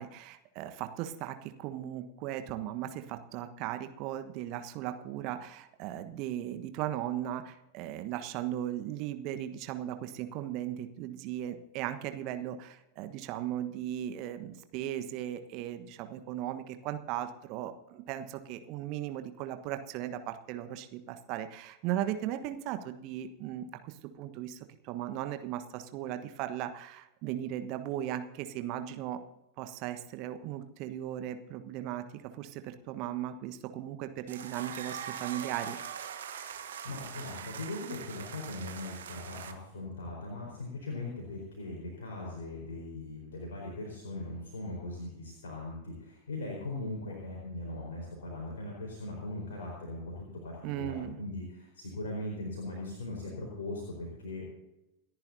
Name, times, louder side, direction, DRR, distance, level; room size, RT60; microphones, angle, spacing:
voice 1, 0.0-29.2 29.6-35.8 50.6-51.2, right 12 dB, 40° right, 8 dB, 1.3 m, -37 dB
sound 1, 34.3-39.5, right 8 dB, 65° right, 1.5 m, -42 dB
voice 2, 36.5-54.6, left 2 dB, 65° left, -2 dB, 4.5 m, -40 dB
28.5 x 10.5 x 2.8 m, 0.93 s
figure-of-eight pair, 90°, 0 cm